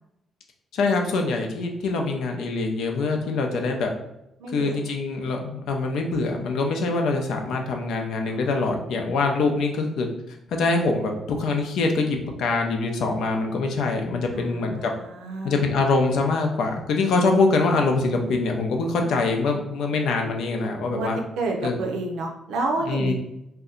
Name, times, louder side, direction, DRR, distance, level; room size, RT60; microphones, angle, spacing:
voice 1, 0.7-3.9 4.5-10.1 10.5-14.9 15.4-21.2 21.6-21.7 22.9-23.1, left 3 dB, 75° left, 3 dB, 0.5 m, -24 dB
voice 2, 4.4-4.8 8.2-8.6 14.3-15.6 20.9-23.1, right 2 dB, 85° right, 3 dB, 0.5 m, -30 dB
2.7 x 2.2 x 3.7 m, 0.84 s
cardioid pair, 90°, 0 cm